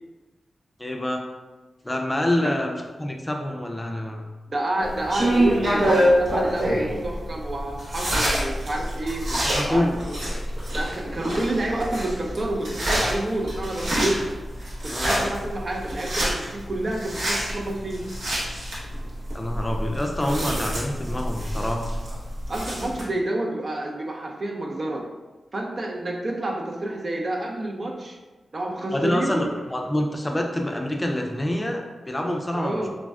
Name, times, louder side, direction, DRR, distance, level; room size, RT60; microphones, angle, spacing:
voice 1, 0.8-1.2 1.8-4.2 9.3-9.9 14.9-15.3 19.3-21.9 28.9-32.9, left 1 dB, 20° left, 2 dB, 0.4 m, -26 dB
voice 2, 4.5-9.3 9.6-10.1 10.7-14.3 14.8-18.0 22.5-25.1 25.5-28.2 28.5-29.5 32.5-33.0, right 1 dB, 50° right, 1 dB, 0.4 m, -29 dB
sound 1, 4.8-23.0, equal, 75° right, 0.8 m, -26 dB
3.3 x 2.1 x 2.4 m, 1.2 s
cardioid pair, 50°, 0 cm